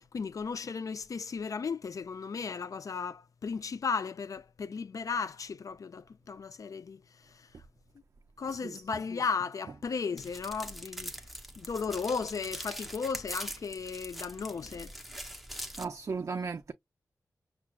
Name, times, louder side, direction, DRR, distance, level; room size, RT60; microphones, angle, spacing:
voice 1, 0.0-7.0 8.4-11.1 11.6-14.9, left 5 dB, 60° left, 0.4 m, -35 dB
voice 2, 8.5-8.8 9.7-9.8 15.8-16.7, right 5 dB, 50° right, 0.4 m, -36 dB
sound 1, 10.2-15.8, equal, ahead, 0.8 m, -42 dB
5.8 x 2.2 x 2.2 m
wide cardioid pair, 90°, 6 cm